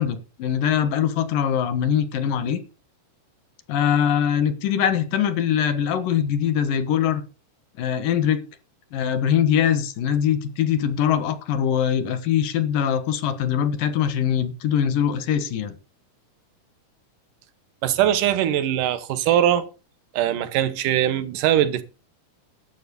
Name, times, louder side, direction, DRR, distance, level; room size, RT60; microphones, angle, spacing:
voice 1, 0.0-2.6 3.7-7.2 7.8-8.4 8.9-15.7, left 9 dB, 85° left, 3.1 m, -22 dB
voice 2, 17.8-19.7 20.1-21.8, right 11 dB, 75° right, 2.6 m, -21 dB
11.5 x 7.8 x 6.9 m
omnidirectional pair, 3.8 m